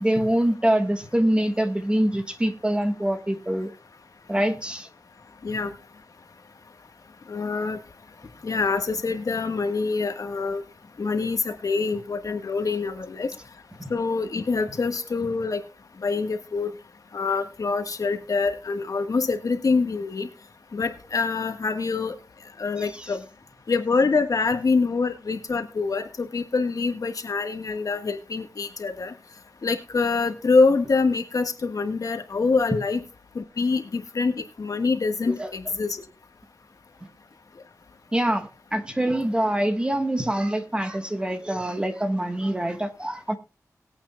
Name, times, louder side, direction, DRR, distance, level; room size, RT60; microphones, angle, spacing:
voice 1, 0.0-3.7 4.3-4.9 13.8-13.9 22.8-23.1 35.3-35.5 38.1-43.4, right 1 dB, 15° right, 7 dB, 1.4 m, -25 dB
voice 2, 7.3-7.8 8.4-10.6 11.0-13.3 13.9-15.6 16.0-16.7 17.1-20.3 20.7-22.1 22.6-23.2 23.7-29.1 29.6-33.0 33.3-36.0, left 4 dB, 70° left, 6 dB, 1.4 m, -25 dB
20.0 x 8.7 x 2.3 m, 0.30 s
wide cardioid pair, 100°, 6 cm